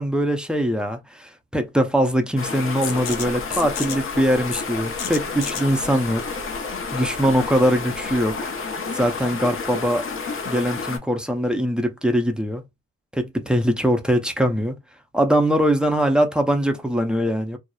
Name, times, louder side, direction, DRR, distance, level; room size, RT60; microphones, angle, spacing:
voice 1, 0.0-6.2 6.9-8.5 8.9-10.0 10.5-12.6 13.1-14.8 15.1-17.6, equal, 5° right, 0.5 m, -22 dB
sound 1, 2.4-11.0, left 4 dB, 45° left, 0.8 m, -30 dB
sound 2, 2.8-8.3, left 6 dB, 85° left, 0.7 m, -35 dB
2.7 x 2.0 x 2.3 m
cardioid pair, 90°, 30 cm